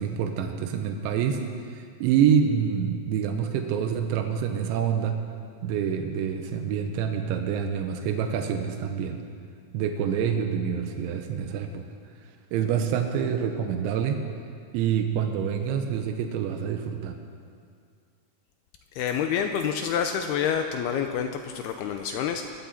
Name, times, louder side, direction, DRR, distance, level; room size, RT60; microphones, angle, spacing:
voice 1, 0.0-1.4 1.7-5.2 5.6-9.2 9.7-11.8 12.5-14.2 14.7-17.2, right 8 dB, 90° right, 5 dB, 3.4 m, -26 dB
voice 2, 19.0-22.5, left 8 dB, 85° left, 6 dB, 2.3 m, -28 dB
24.5 x 14.0 x 4.2 m, 2.2 s
omnidirectional pair, 5.2 m